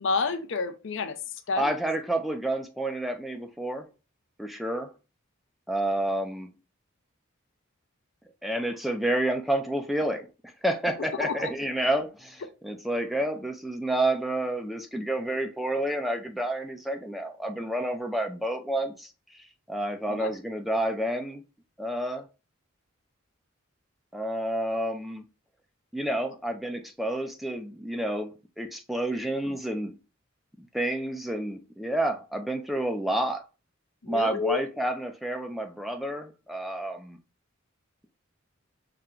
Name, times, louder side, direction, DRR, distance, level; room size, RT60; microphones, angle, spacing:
voice 1, 0.0-1.7 11.2-11.5 20.1-20.3 34.0-34.6, left 4 dB, 60° left, 0.5 m, -30 dB
voice 2, 1.6-3.9 4.4-4.9 5.7-6.5 8.4-10.3 10.6-21.4 21.8-22.2 24.1-25.3 25.9-29.9 30.6-33.4 34.1-37.2, right 1 dB, ahead, 0.4 m, -29 dB
5.7 x 2.2 x 3.7 m
head